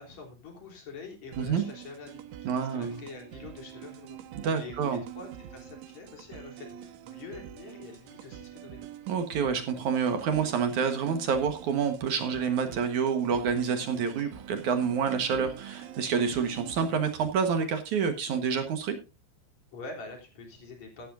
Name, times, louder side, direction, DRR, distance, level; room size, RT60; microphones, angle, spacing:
voice 1, 0.0-4.2 4.5-8.9 19.7-21.1, left 4 dB, 40° left, 2 dB, 4.3 m, -45 dB
sound 1, 1.3-17.3, right 11 dB, 85° right, 3.7 m, -46 dB
voice 2, 2.4-3.0 4.4-5.0 9.1-19.0, right 6 dB, 65° right, 7 dB, 1.9 m, -28 dB
15.5 x 12.0 x 2.6 m, 0.28 s
omnidirectional pair, 5.3 m